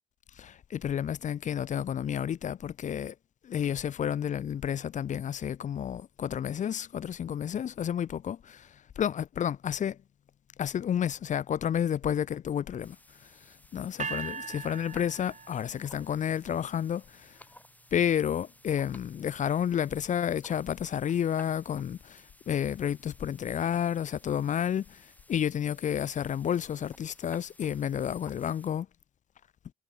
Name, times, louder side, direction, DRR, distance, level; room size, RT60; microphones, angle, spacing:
voice 1, 0.4-3.1 3.4-10.0 10.6-13.0 13.2-17.4 17.9-28.9, left 9 dB, 40° left, 0.4 m, -31 dB
Nina Tweaked static, 12.8-28.7, left 1 dB, 10° left, 6.1 m, -57 dB
sound 1, 14.0-16.1, right 5 dB, 35° right, 2.8 m, -39 dB
cardioid pair, 90°, 20 cm